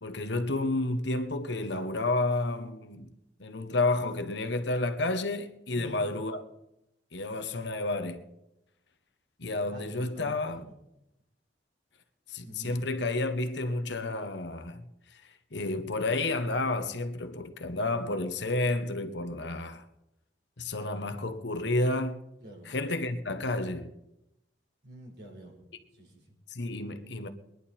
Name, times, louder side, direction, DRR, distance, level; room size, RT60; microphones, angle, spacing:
voice 1, 0.0-3.1 3.4-6.4 7.1-8.2 9.4-10.6 12.3-14.8 15.1-19.8 20.6-22.2 22.7-24.0 26.5-27.3, left 2 dB, 70° left, 1.1 m, -31 dB
voice 2, 5.7-6.1 9.7-10.7 12.4-12.8 22.4-22.8 24.8-25.6 25.9-26.4, right 1 dB, 60° right, 4.6 m, -47 dB
21.5 x 11.0 x 4.3 m
head